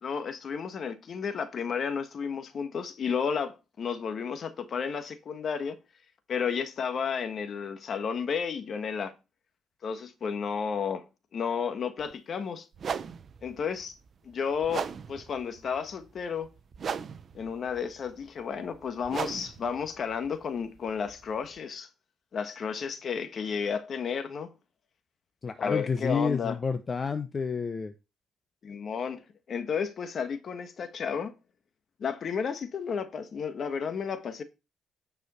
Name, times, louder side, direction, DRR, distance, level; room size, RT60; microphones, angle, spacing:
voice 1, 0.0-5.8 6.3-9.1 9.8-11.0 11.3-12.7 13.4-14.0 14.2-16.5 17.3-21.9 22.3-24.5 25.6-26.6 28.6-29.2 29.5-31.3 32.0-34.4, left 6 dB, 55° left, 1.4 m, -32 dB
sound 1, 12.0-12.1 12.7-21.6, right 6 dB, 50° right, 0.7 m, -39 dB
voice 2, 25.4-27.9, left 5 dB, 35° left, 0.8 m, -30 dB
9.6 x 4.8 x 4.3 m
cardioid pair, 90°, 0 cm